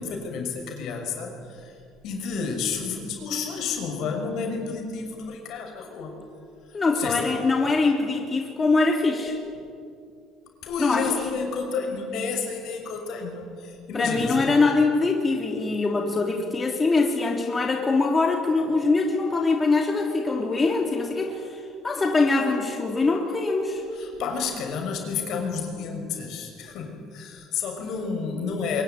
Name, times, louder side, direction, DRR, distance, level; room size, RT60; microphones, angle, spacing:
voice 1, 0.0-1.7 2.0-6.2 6.7-7.3 10.6-14.5 23.9-28.8, left 5 dB, 70° left, 3 dB, 6.4 m, -30 dB
voice 2, 6.7-9.4 10.8-11.2 13.9-23.8, left 3 dB, 25° left, 1 dB, 3.3 m, -23 dB
24.0 x 23.0 x 9.9 m, 2.4 s
cardioid pair, 100°, 0 cm